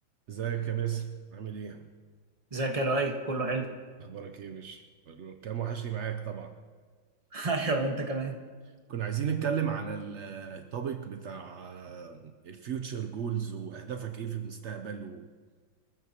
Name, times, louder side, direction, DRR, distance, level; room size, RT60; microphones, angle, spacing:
voice 1, 0.3-1.9 4.0-6.5 8.9-15.3, right 8 dB, 75° right, 6 dB, 0.6 m, -35 dB
voice 2, 2.5-3.7 7.3-8.4, right 2 dB, 20° right, 2 dB, 1.2 m, -29 dB
24.0 x 15.0 x 2.9 m, 1.5 s
omnidirectional pair, 2.1 m